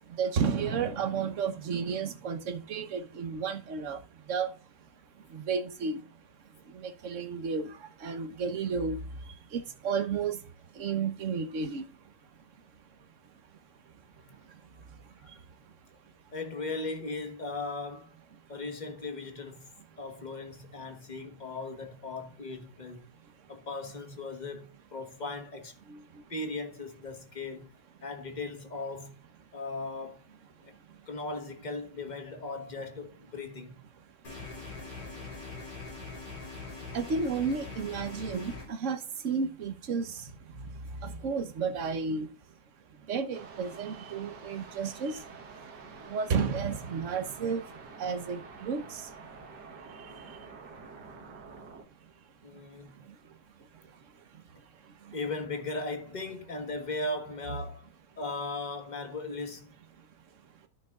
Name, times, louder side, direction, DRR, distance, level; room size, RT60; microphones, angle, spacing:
voice 1, 0.2-4.0 4.3-4.5 5.3-6.0 6.8-7.7 8.0-9.0 9.5-10.4 10.8-11.8 25.9-26.0 36.9-39.0 39.2-40.1 40.6-40.7 41.0-42.3 43.1-45.2 46.1-47.6 48.0-48.8, right 5 dB, 50° right, 1.2 m, -32 dB
voice 2, 16.3-18.2 18.5-19.7 20.0-23.1 23.5-25.7 26.3-27.7 28.0-29.2 29.5-30.2 30.6-30.7 31.1-33.9 52.4-53.0 55.1-57.9 58.2-59.8, left 3 dB, 30° left, 1.3 m, -38 dB
sound 1, 34.2-38.6, left 3 dB, 90° left, 4.6 m, -42 dB
sound 2, 43.3-51.8, right 4 dB, 75° right, 1.9 m, -48 dB
13.5 x 6.1 x 2.4 m
omnidirectional pair, 1.9 m